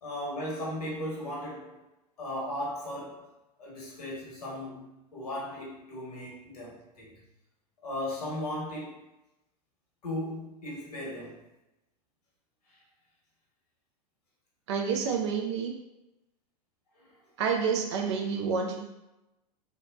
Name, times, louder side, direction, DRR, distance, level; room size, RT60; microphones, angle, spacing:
voice 1, 0.0-1.8 2.2-3.3 3.6-7.2 7.8-9.0 10.0-11.4 17.0-17.1, left 1 dB, 65° left, -5 dB, 1.1 m, -37 dB
voice 2, 14.7-15.8 17.4-18.8, right 6 dB, 45° right, 1 dB, 0.4 m, -28 dB
2.7 x 2.2 x 2.3 m, 0.94 s
figure-of-eight pair, 95°, 21 cm